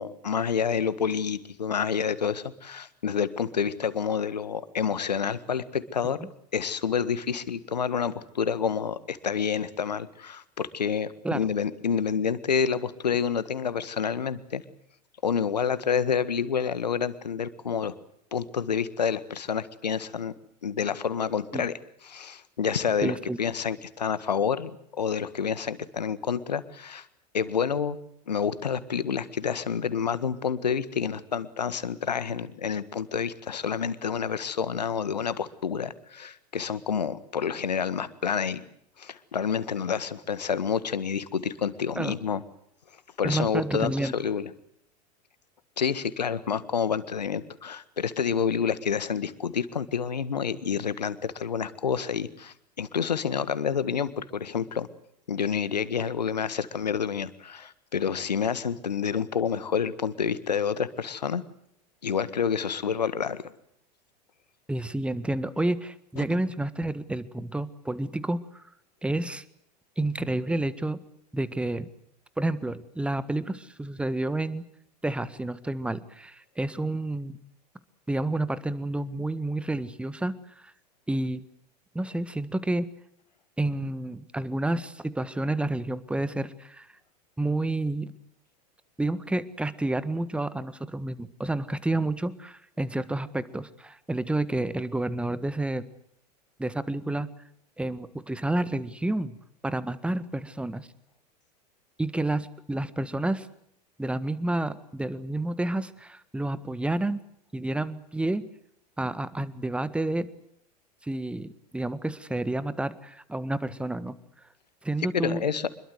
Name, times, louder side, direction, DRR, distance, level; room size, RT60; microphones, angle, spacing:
voice 1, 0.0-6.2 6.5-14.6 15.2-17.9 18.3-20.3 20.6-21.7 22.0-24.7 25.0-27.0 27.3-28.0 28.3-38.6 39.0-42.4 43.2-44.5 45.8-54.9 55.3-61.4 62.0-63.4 66.2-66.3 115.1-115.7, left 7 dB, 75° left, 15 dB, 1.7 m, -28 dB
voice 2, 23.0-23.4 42.0-42.1 43.2-44.1 64.7-68.6 69.0-69.4 70.0-71.0 71.3-71.9 72.4-74.6 75.0-77.4 78.1-80.7 81.1-81.4 81.9-82.8 83.6-86.9 87.4-88.1 89.0-95.8 96.6-97.3 97.8-99.4 99.6-100.9 102.0-103.5 104.0-107.2 107.5-108.4 109.0-110.3 111.0-114.2 114.8-115.4, right 2 dB, 5° right, 15 dB, 1.6 m, -29 dB
26.0 x 22.0 x 8.0 m, 0.71 s
figure-of-eight pair, 85°, 21 cm